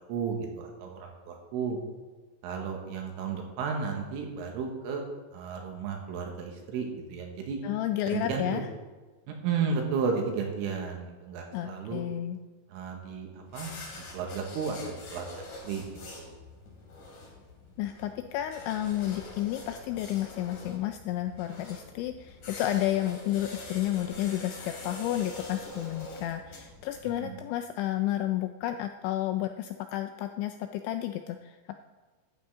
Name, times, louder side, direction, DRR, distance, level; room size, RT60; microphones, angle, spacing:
voice 1, 0.1-1.8 2.4-5.0 5.3-7.6 8.1-8.7 9.3-12.0 12.7-15.8 16.1-16.3 27.0-27.4, right 5 dB, 80° right, 2 dB, 4.1 m, -33 dB
voice 2, 7.6-8.6 11.5-12.4 17.8-31.8, left 13 dB, 85° left, 7 dB, 2.6 m, -31 dB
sound 1, 13.5-27.3, left 2 dB, 45° left, 3.6 m, -45 dB
14.0 x 11.5 x 3.7 m, 1.3 s
omnidirectional pair, 5.8 m